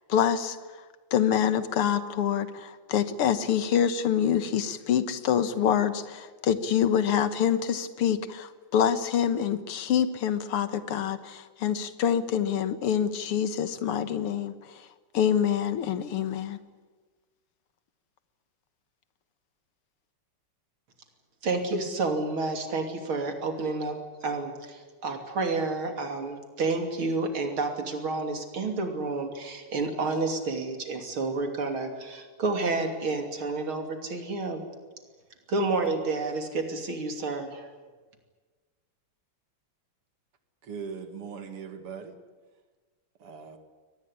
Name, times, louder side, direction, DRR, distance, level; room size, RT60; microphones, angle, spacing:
voice 1, 0.1-0.6 1.1-14.5 15.1-16.6, left 9 dB, 80° left, 12 dB, 2.2 m, -26 dB
voice 2, 21.4-34.6 35.5-37.7, right 3 dB, 70° right, 5 dB, 3.7 m, -30 dB
voice 3, 40.6-42.2 43.2-43.6, right 6 dB, 90° right, 7 dB, 3.0 m, -40 dB
23.0 x 19.5 x 10.0 m, 1.4 s
omnidirectional pair, 2.4 m